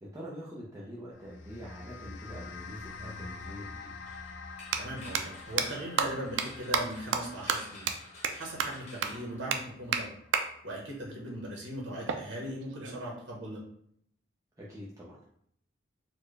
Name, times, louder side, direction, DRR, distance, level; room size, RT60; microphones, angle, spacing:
voice 1, 0.0-3.9 14.6-15.2, equal, 20° right, -6 dB, 0.6 m, -45 dB
sound 1, 1.1-11.7, left 3 dB, 80° left, 0.4 m, -47 dB
sound 2, 3.4-3.5 4.6-4.8 5.1-5.2 5.6-5.7 6.0-6.1 6.4-6.5 6.7-6.8 7.1-7.2 7.5-7.6 7.9-8.0 8.2-8.3 8.6-8.7 9.0-9.1 9.5-9.6 9.9-10.0 10.3-10.4 12.1-13.1, right 7 dB, 90° right, 0.4 m, -29 dB
sound 3, 4.1-10.0, left 2 dB, 35° left, 0.9 m, -52 dB
voice 2, 4.8-10.1 10.6-13.6, right 1 dB, 70° right, -2 dB, 1.1 m, -39 dB
4.3 x 2.2 x 3.1 m, 0.67 s
head